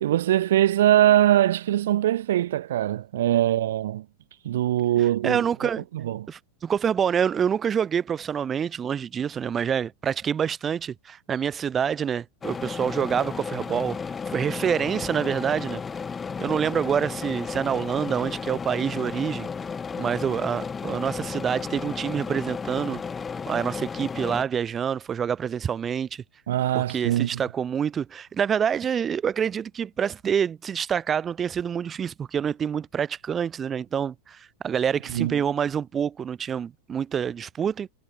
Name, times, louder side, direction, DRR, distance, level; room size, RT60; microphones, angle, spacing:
voice 1, 0.0-4.0 4.4-5.4 5.9-6.3 26.5-27.4 35.1-35.4, right 13 dB, 60° right, 0.3 m, -22 dB
voice 2, 5.2-5.9 6.3-14.0 14.3-15.8 16.4-19.5 20.0-23.0 23.5-26.2 26.7-37.9, right 8 dB, 20° right, 1.6 m, -27 dB
sound 1, 12.4-24.4, left 5 dB, 15° left, 0.4 m, -33 dB
figure-of-eight pair, 90°, 0 cm